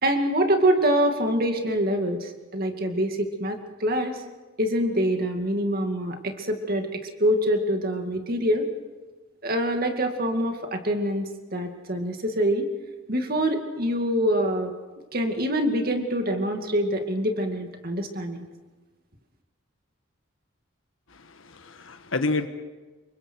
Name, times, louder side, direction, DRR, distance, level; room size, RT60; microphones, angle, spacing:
voice 1, 0.0-4.2 4.6-8.7 9.4-12.7 13.1-14.7 15.1-18.5, equal, 45° right, 4 dB, 2.3 m, -25 dB
voice 2, 21.1-22.5, left 3 dB, 75° left, 8 dB, 1.4 m, -29 dB
28.5 x 24.0 x 4.6 m, 1.3 s
head